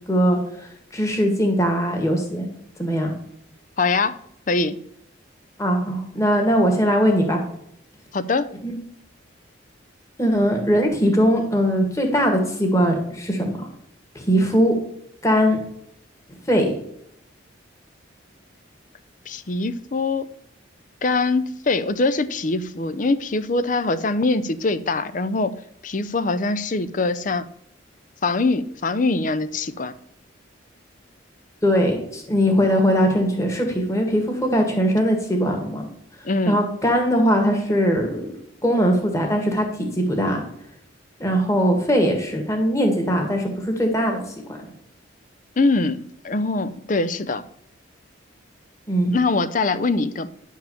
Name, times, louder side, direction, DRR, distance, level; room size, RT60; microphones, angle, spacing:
voice 1, 0.1-2.5 2.8-3.1 5.6-7.4 8.6-8.7 10.2-13.7 14.1-14.7 15.2-15.6 16.5-16.7 31.6-35.8 36.5-38.2 38.6-40.4 41.2-44.2 48.9-49.1, equal, 15° left, 2 dB, 1.7 m, -20 dB
voice 2, 3.8-4.2 4.5-4.8 8.1-8.5 19.3-20.3 21.0-25.5 25.8-27.5 28.2-29.9 36.2-36.6 45.6-47.4 49.1-50.3, left 3 dB, 40° left, 14 dB, 0.5 m, -23 dB
10.5 x 4.6 x 7.1 m, 0.73 s
head